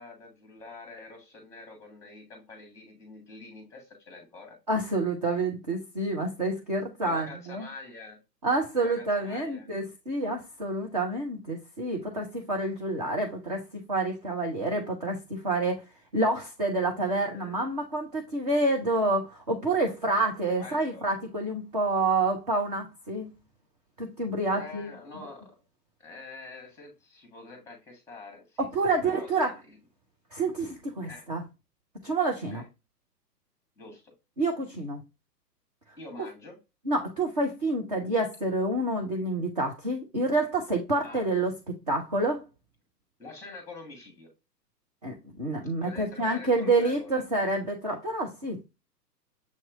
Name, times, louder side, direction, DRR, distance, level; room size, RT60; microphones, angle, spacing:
voice 1, 0.0-4.6 7.0-8.2 8.8-9.7 12.9-13.2 17.3-17.6 20.6-21.1 24.5-25.6 26.0-29.8 31.1-31.3 32.5-32.7 33.8-34.1 35.9-36.6 41.0-41.2 43.2-44.3 45.8-47.2, left 3 dB, 5° left, 1.3 m, -46 dB
voice 2, 4.7-7.7 8.4-15.8 16.1-23.3 24.0-24.9 28.6-29.5 30.3-31.4 32.0-32.6 34.4-35.0 36.9-42.4 45.0-48.6, right 2 dB, 25° right, 0.5 m, -28 dB
7.0 x 3.0 x 2.4 m
figure-of-eight pair, 120°, 50 cm